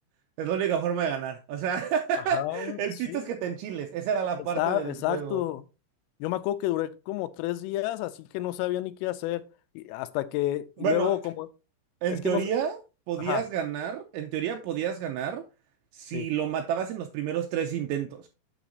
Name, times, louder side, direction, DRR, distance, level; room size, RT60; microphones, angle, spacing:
voice 1, 0.4-5.4 10.8-11.2 12.0-12.8 13.1-15.5 15.9-18.3, right 8 dB, 85° right, 2.7 m, -29 dB
voice 2, 2.3-2.8 3.1-3.2 4.5-5.6 6.2-9.4 9.8-11.5 12.2-12.5 13.2-13.4 16.1-16.3, left 15 dB, 85° left, 3.2 m, -30 dB
9.1 x 7.1 x 2.6 m
omnidirectional pair, 5.8 m